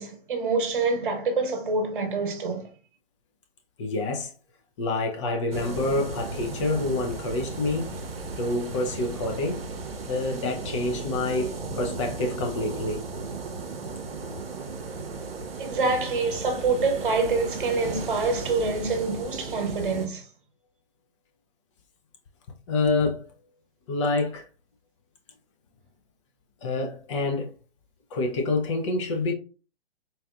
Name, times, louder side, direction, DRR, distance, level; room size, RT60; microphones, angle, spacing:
voice 1, 0.0-2.7 15.6-20.2, right 3 dB, 60° right, 1.1 m, -26 dB
voice 2, 3.8-4.3 4.8-8.0 8.4-9.7 10.1-13.1 22.7-23.3 23.9-24.4 26.6-27.5 28.1-29.3, left 2 dB, 30° left, 0.6 m, -27 dB
sound 1, 5.5-20.1, right 3 dB, 80° right, 0.7 m, -35 dB
4.0 x 2.5 x 2.3 m
figure-of-eight pair, 125°, 29 cm